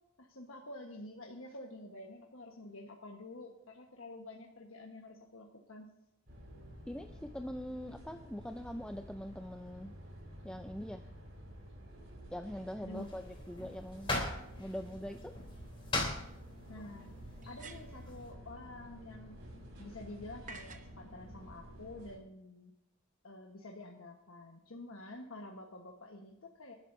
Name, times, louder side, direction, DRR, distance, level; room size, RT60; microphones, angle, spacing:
voice 1, 0.2-5.9 12.8-13.1 16.7-17.1 17.4-19.4 19.8-22.7 23.2-26.7, left 2 dB, 75° left, 0 dB, 1.3 m, -49 dB
sound 1, 6.3-22.2, equal, 65° right, 5.1 m, -51 dB
voice 2, 6.9-9.9 10.4-11.0 12.3-14.1 14.6-15.3, equal, 5° left, 5 dB, 0.5 m, -43 dB
sound 2, 12.9-18.3, left 2 dB, 25° left, 3.5 m, -40 dB
sound 3, 15.5-15.6 17.4-18.1 20.5-20.9, right 3 dB, 40° right, 0.9 m, -50 dB
26.5 x 12.0 x 2.7 m, 0.89 s
head